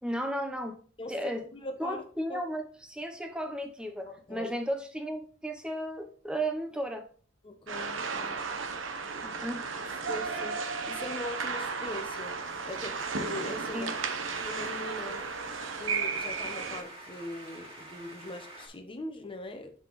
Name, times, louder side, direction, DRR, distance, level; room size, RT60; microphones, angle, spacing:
voice 1, 0.0-0.8 1.1-1.4 1.8-7.1 9.2-9.7 13.7-13.9, right 1 dB, 5° right, 0.8 m, -34 dB
voice 2, 1.5-2.0 2.3-2.4 4.1-4.5 7.4-8.3 10.1-10.6 10.9-12.3 12.6-13.9 14.4-15.2 15.8-19.7, left 2 dB, 25° left, 1.0 m, -40 dB
sound 1, 7.7-16.8, right 5 dB, 80° right, 0.9 m, -34 dB
sound 2, 9.7-18.7, right 1 dB, 30° right, 2.0 m, -50 dB
6.9 x 5.8 x 3.1 m
head